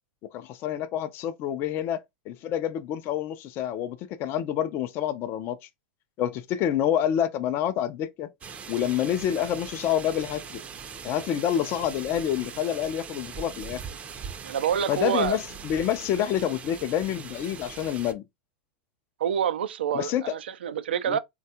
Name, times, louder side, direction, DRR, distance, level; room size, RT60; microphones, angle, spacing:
voice 1, 0.2-5.6 6.2-8.3 8.7-10.6 11.0-13.8 14.9-18.2 19.9-20.3 21.1-21.2, left 10 dB, 45° left, 0.4 m, -28 dB
sound 1, 8.4-18.1, right 6 dB, 25° right, 0.5 m, -41 dB
voice 2, 14.4-15.4 19.2-21.2, right 8 dB, 85° right, 0.4 m, -27 dB
3.4 x 2.3 x 2.7 m
hypercardioid pair, 115°, 6 cm